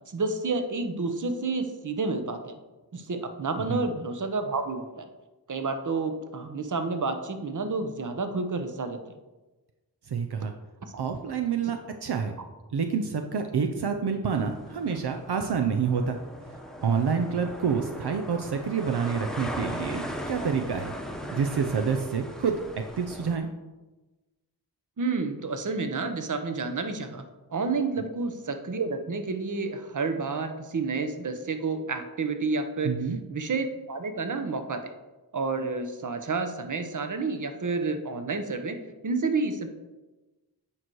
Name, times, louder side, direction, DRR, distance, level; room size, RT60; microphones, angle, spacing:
voice 1, 0.1-2.6 2.9-5.1 5.5-9.0 10.9-11.0 25.0-27.2 27.5-33.0 33.3-34.9 35.3-39.7, right 3 dB, 50° right, 7 dB, 0.9 m, -30 dB
voice 2, 10.1-10.5 11.0-12.3 12.7-16.2 16.8-20.9 21.3-22.6 23.0-23.5 32.8-33.2, right 6 dB, 75° right, 5 dB, 0.7 m, -28 dB
sound 1, 14.2-23.4, equal, ahead, 0.9 m, -38 dB
8.8 x 4.7 x 4.6 m, 1.1 s
wide cardioid pair, 60°, 40 cm